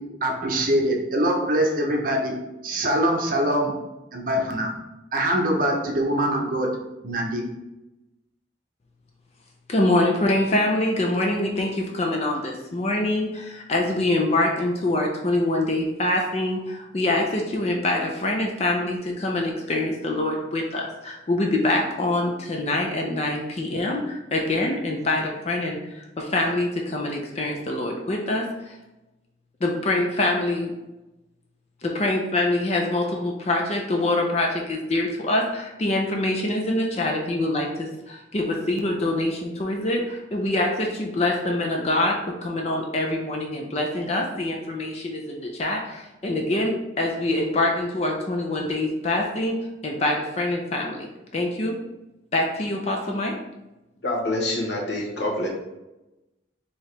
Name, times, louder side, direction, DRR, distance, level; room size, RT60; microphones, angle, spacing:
voice 1, 0.0-2.3 2.6-3.7 4.1-4.7 5.1-6.7 7.0-7.4, right 1 dB, 45° right, 1 dB, 0.7 m, -23 dB
voice 2, 9.7-28.8 29.6-30.7 31.8-49.6 49.8-51.1 51.3-51.8 52.3-53.3, left 1 dB, 35° left, 0 dB, 0.5 m, -25 dB
voice 3, 54.0-55.5, left 1 dB, 65° left, -1 dB, 0.9 m, -26 dB
4.6 x 2.9 x 3.2 m, 1.0 s
head